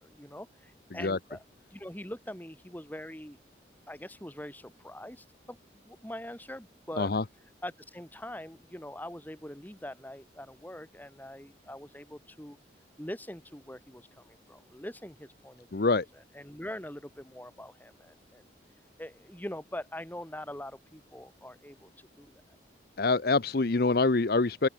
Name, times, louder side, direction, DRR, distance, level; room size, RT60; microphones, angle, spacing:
voice 1, 0.0-1.4 1.7-3.4 3.9-7.1 7.6-12.6 13.0-15.8 16.3-18.4 19.0-21.9 22.2-22.4, left 1 dB, 10° left, 2.2 m, -43 dB
voice 2, 15.7-16.1 23.0-24.7, left 3 dB, 55° left, 0.7 m, -25 dB
open air
head